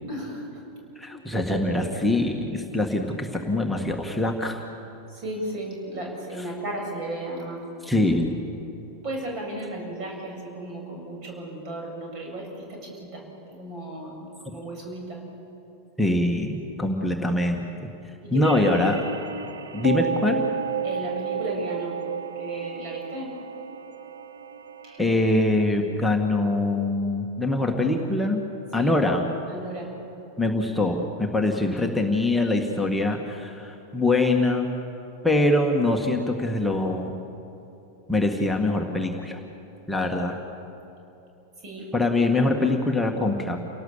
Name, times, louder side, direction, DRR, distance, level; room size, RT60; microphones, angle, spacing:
voice 1, 0.1-0.5 1.1-1.7 2.1-2.2 5.1-7.6 9.0-13.2 13.5-15.2 18.2-19.1 20.8-22.0 22.4-23.3 24.8-25.0 28.7-28.9 29.5-29.9 40.0-40.1 41.6-41.9, right 1 dB, 40° right, 0 dB, 7.7 m, -35 dB
voice 2, 0.9-4.6 7.8-8.4 16.0-17.9 18.3-19.0 19.7-20.4 25.0-28.5 28.7-29.2 30.4-34.7 35.2-37.1 38.1-39.4 39.9-40.4 41.9-43.6, left 2 dB, 5° left, 1 dB, 1.8 m, -23 dB
sound 1, 18.4-25.3, right 6 dB, 70° right, 1.3 m, -32 dB
29.0 x 18.5 x 7.2 m, 2.9 s
figure-of-eight pair, 90°, 0 cm